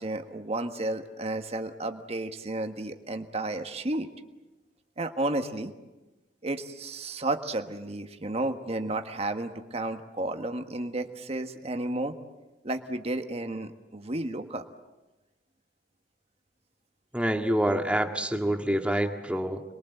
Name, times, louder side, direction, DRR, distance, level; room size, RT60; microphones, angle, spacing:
voice 1, 0.0-4.1 5.0-5.7 6.4-12.1 12.6-14.7, right 2 dB, 35° right, 6 dB, 1.4 m, -32 dB
voice 2, 17.1-19.6, right 1 dB, 5° right, 4 dB, 1.8 m, -27 dB
27.0 x 22.0 x 8.0 m, 1.1 s
head